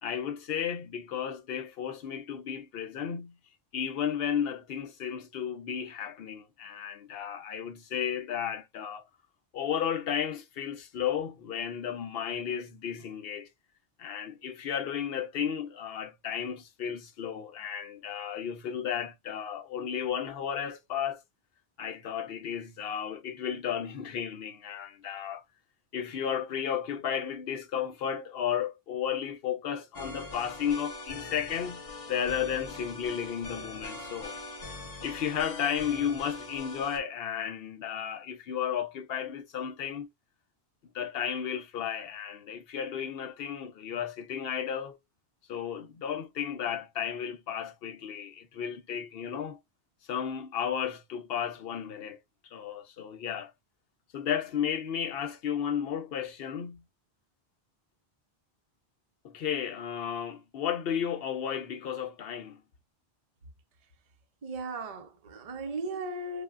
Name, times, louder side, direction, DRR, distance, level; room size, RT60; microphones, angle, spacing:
voice 1, 0.0-3.4 3.7-9.1 9.5-13.5 14.0-21.2 21.8-25.4 25.9-34.3 35.0-40.1 40.9-45.0 45.5-49.6 50.1-52.2 52.5-53.5 54.1-56.8 59.2-62.6, left 8 dB, 70° left, 0.8 m, -33 dB
sound 1, 29.9-37.0, left 2 dB, 40° left, 0.7 m, -42 dB
voice 2, 64.4-66.4, right 2 dB, 45° right, 0.5 m, -36 dB
3.3 x 2.1 x 2.4 m
omnidirectional pair, 1.1 m